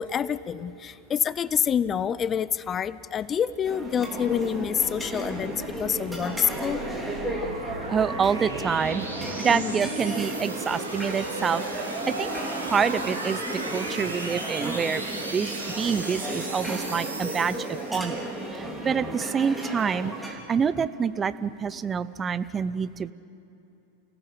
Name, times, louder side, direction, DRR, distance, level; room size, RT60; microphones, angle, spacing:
voice 1, 0.0-6.8 9.5-9.7 18.7-19.1, left 8 dB, 25° left, 18 dB, 0.5 m, -27 dB
sound 1, 3.7-20.3, right 1 dB, ahead, 3.5 m, -34 dB
sound 2, 3.7-18.3, right 2 dB, 80° right, 3.1 m, -36 dB
voice 2, 7.9-11.6 12.1-12.3 12.7-13.4 13.7-15.5 15.8-18.2 18.5-23.1, right 6 dB, 20° right, 15 dB, 0.6 m, -27 dB
29.0 x 16.5 x 6.9 m, 2.9 s
figure-of-eight pair, 90°, 0 cm